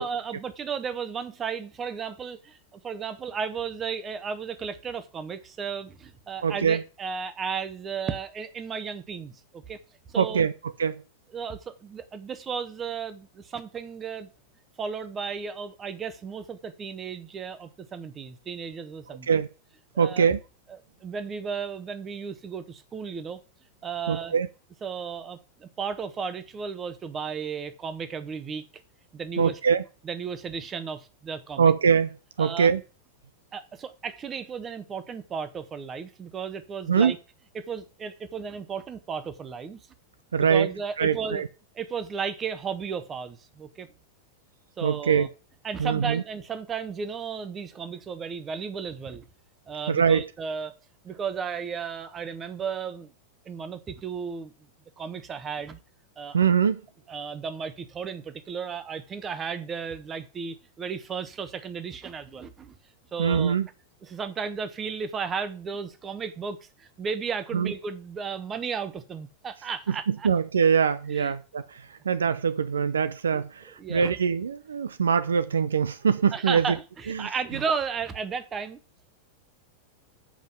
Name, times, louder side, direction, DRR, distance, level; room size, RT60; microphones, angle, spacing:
voice 1, 0.0-9.8 10.1-10.5 11.3-14.3 14.8-19.4 19.9-20.3 21.0-23.4 23.8-24.3 24.8-28.6 29.1-29.6 30.0-31.7 32.4-32.7 33.5-37.2 37.5-39.8 40.4-41.4 41.7-43.9 44.8-45.3 45.6-49.2 49.7-50.7 51.0-53.1 53.4-54.5 55.0-55.8 56.2-56.4 57.1-62.8 63.1-63.6 64.0-70.3 71.1-71.3 73.3-73.4 73.8-74.1 76.3-78.8, right 6 dB, 25° right, 1.1 m, -34 dB
voice 2, 6.4-6.8 10.2-10.5 10.8-11.0 19.3-19.5 20.0-20.4 24.1-24.5 29.4-29.8 31.6-32.1 32.4-32.8 36.9-37.1 40.3-40.7 41.0-41.5 44.8-45.3 45.8-46.2 49.9-50.2 56.3-56.8 63.2-63.7 67.5-67.7 70.1-76.8 77.1-77.3, right 6 dB, 70° right, 0.6 m, -23 dB
7.5 x 5.4 x 7.3 m
figure-of-eight pair, 90°, 0 cm